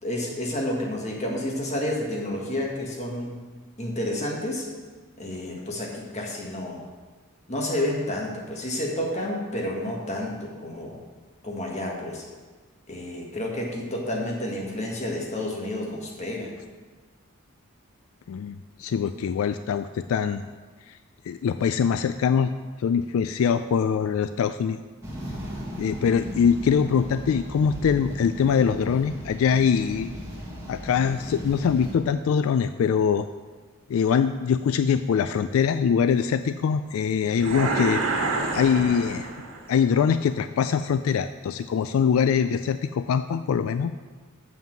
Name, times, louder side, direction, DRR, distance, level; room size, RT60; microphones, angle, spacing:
voice 1, 0.0-3.3 3.8-4.7 5.2-6.8 7.5-11.0 11.4-12.2 12.9-16.5, left 1 dB, 30° left, -1 dB, 1.6 m, -30 dB
voice 2, 18.3-20.5 20.9-21.0 21.2-22.5 22.8-24.8 25.8-30.1 30.7-33.3 33.9-38.0 38.5-39.3 39.7-43.9, left 7 dB, 75° left, 11 dB, 0.3 m, -23 dB
sound 1, 25.0-31.9, equal, 15° right, 1.6 m, -37 dB
sound 2, 37.4-39.7, right 3 dB, 75° right, 1.5 m, -28 dB
7.2 x 5.7 x 7.5 m, 1.4 s
head